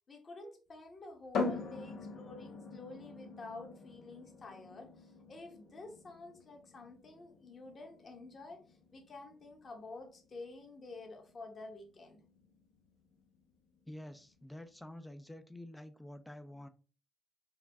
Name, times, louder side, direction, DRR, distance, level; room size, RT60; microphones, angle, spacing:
voice 1, 0.1-12.2, left 3 dB, 40° left, 2 dB, 1.2 m, -50 dB
sound 1, 1.3-14.8, left 4 dB, 75° left, 0.8 m, -44 dB
voice 2, 13.9-16.7, left 1 dB, 5° left, 10 dB, 0.5 m, -48 dB
4.8 x 2.2 x 3.4 m, 0.37 s
cardioid pair, 90°, 0 cm